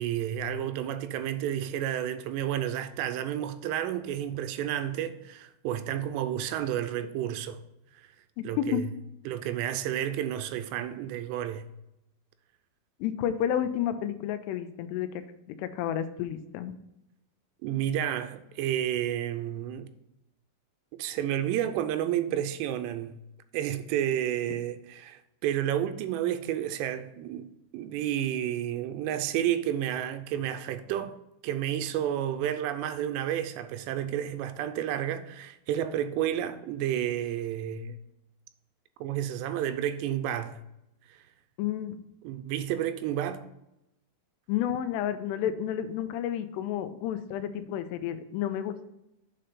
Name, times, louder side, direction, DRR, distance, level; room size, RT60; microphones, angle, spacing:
voice 1, 0.0-7.6 8.4-8.9 9.3-11.7 17.6-19.9 21.0-23.2 23.5-27.5 27.7-31.2 31.4-38.0 39.0-40.6 41.1-41.2 42.2-43.5, right 11 dB, 90° right, 2.8 m, -31 dB
voice 2, 8.4-8.8 13.0-15.2 15.6-16.7 41.6-42.0 44.5-48.9, left 10 dB, 85° left, 2.7 m, -31 dB
7.6 x 4.4 x 5.2 m
omnidirectional pair, 4.9 m